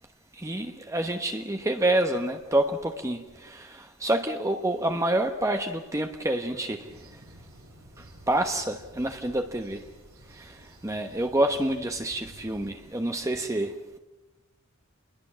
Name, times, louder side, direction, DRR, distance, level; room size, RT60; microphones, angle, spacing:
voice 1, 0.4-6.9 8.3-9.8 10.4-10.5 10.8-14.0, right 1 dB, 15° right, 5 dB, 1.1 m, -28 dB
sound 1, 6.8-12.7, right 1 dB, 90° right, 7.4 m, -51 dB
28.5 x 21.5 x 7.4 m, 1.1 s
head